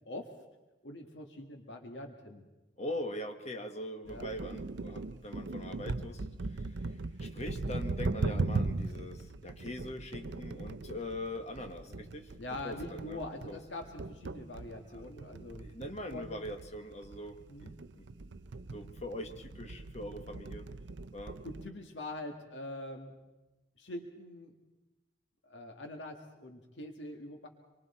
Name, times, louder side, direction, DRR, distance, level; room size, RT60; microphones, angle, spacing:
voice 1, 0.8-2.5 4.1-4.3 11.9-12.1 12.4-15.6 16.1-16.4 17.5-17.7 21.4-23.1 23.8-24.5 25.4-27.5, left 1 dB, 80° left, 4 dB, 1.7 m, -44 dB
voice 2, 2.8-6.2 6.5-6.7 7.2-12.3 12.6-13.2 13.5-13.6 14.9-17.4 17.9-18.0 18.7-20.7 21.1-21.4, left 1 dB, 40° left, 5 dB, 1.5 m, -42 dB
sound 1, 4.1-21.7, right 3 dB, 75° right, 0.6 m, -39 dB
26.5 x 23.0 x 4.3 m, 1.1 s
head